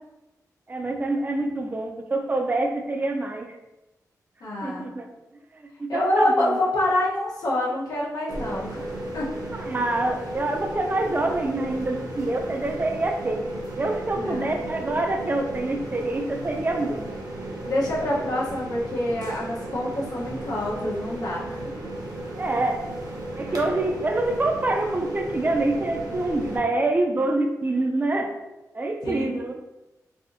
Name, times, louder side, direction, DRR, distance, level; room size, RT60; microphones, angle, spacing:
voice 1, 0.7-3.6 4.6-5.1 5.5-6.6 9.5-13.4 13.8-17.0 22.4-22.9 23.4-28.3 28.7-29.5, right 2 dB, 30° right, 4 dB, 0.4 m, -26 dB
voice 2, 4.4-4.9 5.9-8.9 9.1-9.3 14.2-14.5 17.6-21.6 23.6-23.8 29.0-29.3, left 1 dB, 85° left, -5 dB, 0.9 m, -26 dB
sound 1, 8.3-26.6, right 1 dB, 80° right, 0.7 m, -35 dB
3.4 x 2.6 x 2.6 m, 0.99 s
wide cardioid pair, 95°, 6 cm